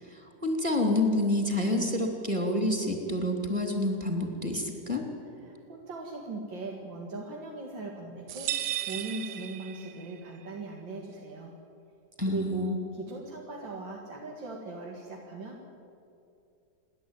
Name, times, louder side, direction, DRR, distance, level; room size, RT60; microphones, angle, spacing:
voice 1, 0.1-5.0 12.2-12.8, left 1 dB, 15° right, 3 dB, 2.9 m, -28 dB
voice 2, 5.4-8.5 8.9-11.5 12.3-15.7, right 2 dB, 90° right, 0 dB, 2.7 m, -39 dB
sound 1, 8.3-10.2, right 12 dB, 70° right, 1.3 m, -35 dB
29.0 x 11.5 x 9.2 m, 2.6 s
omnidirectional pair, 2.0 m